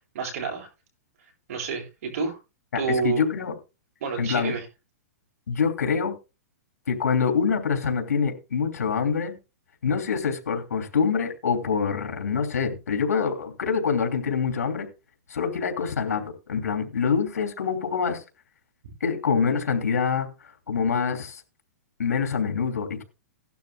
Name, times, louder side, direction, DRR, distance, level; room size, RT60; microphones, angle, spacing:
voice 1, 0.1-0.7 1.5-2.4 2.7-3.2 4.0-4.6, right 5 dB, 65° right, 8.0 m, -29 dB
voice 2, 2.7-3.6 4.2-4.6 5.5-6.1 6.9-9.3 9.8-14.9 15.3-18.2 19.0-21.4 22.0-23.0, left 6 dB, 90° left, 3.2 m, -25 dB
17.5 x 12.0 x 2.3 m
hypercardioid pair, 140°, 9 cm